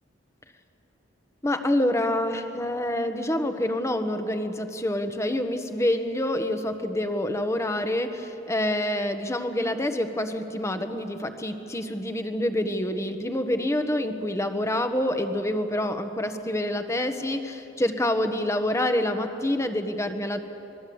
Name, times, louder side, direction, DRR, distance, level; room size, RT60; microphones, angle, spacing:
voice 1, 1.4-20.4, left 1 dB, 15° left, 7 dB, 1.4 m, -27 dB
27.0 x 21.0 x 8.0 m, 2.9 s
head